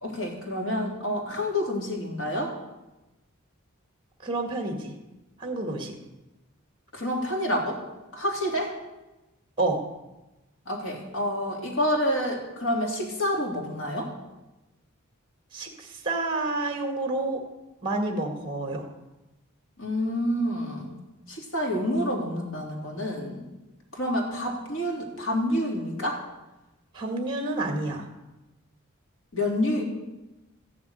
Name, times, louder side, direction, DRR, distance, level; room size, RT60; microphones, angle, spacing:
voice 1, 0.0-2.5 6.9-7.8 8.1-8.7 10.7-14.1 19.8-20.9 21.3-23.4 23.9-26.2 29.3-29.8, equal, 90° left, 0 dB, 3.4 m, -28 dB
voice 2, 4.2-4.9 5.4-5.9 9.6-9.8 15.5-17.4 17.8-18.9 26.9-28.1, right 2 dB, 25° right, 4 dB, 1.8 m, -29 dB
14.5 x 7.4 x 9.2 m, 1.0 s
head